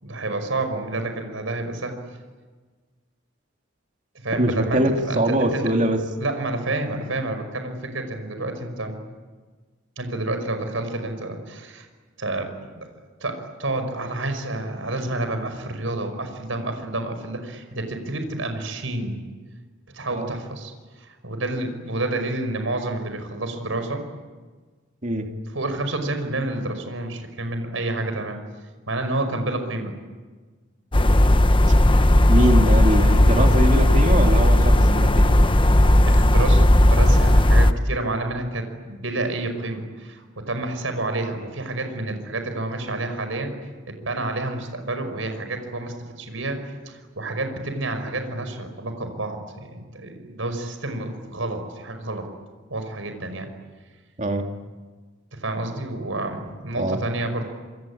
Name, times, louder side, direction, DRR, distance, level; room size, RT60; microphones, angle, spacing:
voice 1, 0.0-1.9 4.2-5.6 6.2-8.9 10.0-11.9 12.2-12.9 13.2-19.2 19.9-24.0 25.5-28.4 28.9-29.9 36.1-43.5 43.9-46.6 46.9-52.3 52.7-53.5 55.3-57.4, right 2 dB, 80° right, 7 dB, 5.5 m, -29 dB
voice 2, 4.3-6.0 20.1-20.3 25.0-25.3 32.3-35.4 54.2-54.5 56.8-57.0, right 1 dB, 40° right, 3 dB, 2.6 m, -23 dB
sound 1, 30.9-37.7, left 1 dB, 25° left, 1.0 m, -15 dB
27.0 x 25.5 x 8.7 m, 1.4 s
head